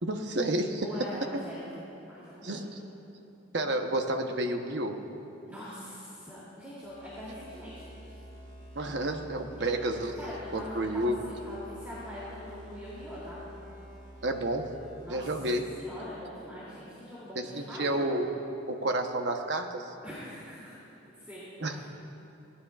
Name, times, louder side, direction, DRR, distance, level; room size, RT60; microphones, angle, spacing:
voice 1, 0.0-0.9 2.4-2.6 3.5-5.0 8.8-10.2 10.5-11.2 14.2-14.7 15.1-15.6 17.3-18.3 18.7-19.9 21.6-21.8, right 1 dB, 60° right, 4 dB, 1.0 m, -30 dB
voice 2, 0.8-1.6 2.1-2.6 5.5-8.1 9.6-9.7 10.2-13.4 15.0-15.3 15.8-18.0 20.0-20.7 21.2-21.8, equal, 10° right, -10 dB, 2.7 m, -43 dB
sound 1, 6.8-16.3, equal, 40° right, 1.2 m, -48 dB
22.0 x 17.5 x 2.4 m, 2.9 s
head